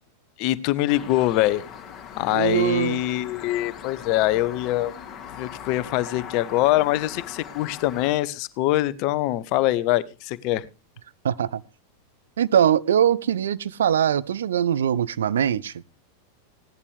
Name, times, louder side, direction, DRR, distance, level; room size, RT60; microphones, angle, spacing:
voice 1, 0.4-1.6 2.1-4.9 5.3-10.7, left 15 dB, 45° left, 0.7 m, -23 dB
sound 1, 0.9-8.1, left 8 dB, 25° left, 2.3 m, -40 dB
voice 2, 2.3-3.0 11.2-11.6 12.4-15.7, right 9 dB, 65° right, 0.5 m, -22 dB
16.5 x 11.0 x 3.3 m
figure-of-eight pair, 90°, 0 cm